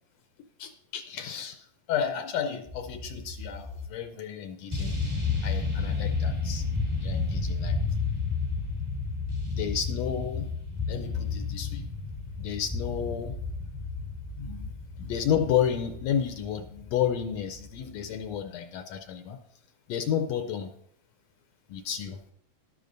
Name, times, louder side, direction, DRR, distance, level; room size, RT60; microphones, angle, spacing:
voice 1, 0.6-5.0 5.4-6.6 7.0-7.8 9.5-10.5 10.9-11.9 12.4-13.4 14.4-14.7 15.0-19.4 19.9-20.7 21.7-22.3, left 8 dB, 75° left, 6 dB, 1.7 m, -31 dB
sound 1, 2.7-3.9 4.7-18.4, left 4 dB, 15° right, 1.1 m, -32 dB
12.0 x 11.5 x 2.6 m, 0.70 s
omnidirectional pair, 3.4 m